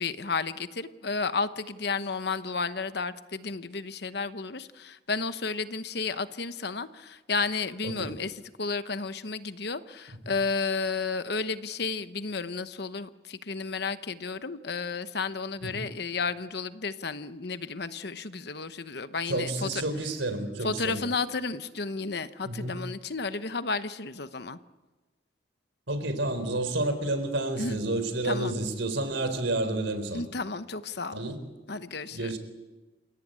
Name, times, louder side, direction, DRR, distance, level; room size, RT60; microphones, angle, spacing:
voice 1, 0.0-19.8 20.6-24.6 27.6-27.8 28.2-28.6 30.1-31.2 31.7-32.3, left 4 dB, 55° left, 12 dB, 1.0 m, -32 dB
voice 2, 19.3-21.0 22.4-22.8 25.9-30.2 31.1-31.4 32.1-32.4, right 2 dB, 75° right, 10 dB, 3.9 m, -30 dB
29.0 x 17.5 x 8.9 m, 1.2 s
head